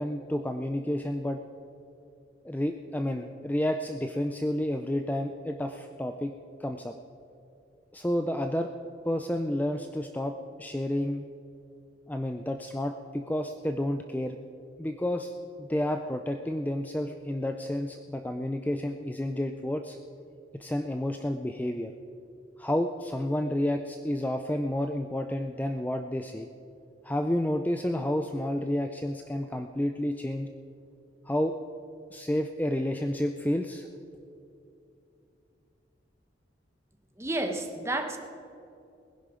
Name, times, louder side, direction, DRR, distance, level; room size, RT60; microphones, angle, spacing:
voice 1, 0.0-1.4 2.5-6.3 6.6-6.9 7.9-8.7 9.1-10.3 10.6-11.2 12.1-14.4 14.8-15.3 15.6-20.0 20.5-21.9 22.6-26.5 27.0-30.5 31.3-31.5 32.1-33.9, left 1 dB, 10° left, 6 dB, 0.4 m, -30 dB
voice 2, 37.2-38.2, right 1 dB, 15° right, 5 dB, 1.0 m, -31 dB
19.5 x 10.5 x 5.0 m, 2.7 s
head